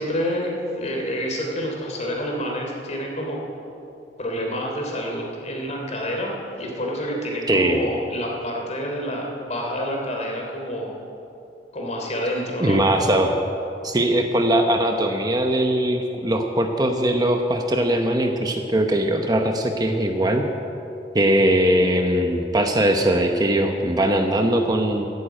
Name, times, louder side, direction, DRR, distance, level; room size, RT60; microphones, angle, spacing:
voice 1, 0.0-3.4 4.2-10.9 11.7-12.9, equal, 40° left, 0 dB, 3.1 m, -28 dB
voice 2, 7.5-7.8 12.6-13.4 13.8-20.4 21.1-25.1, right 1 dB, 20° right, 4 dB, 0.9 m, -20 dB
13.5 x 12.0 x 8.9 m, 2.8 s
head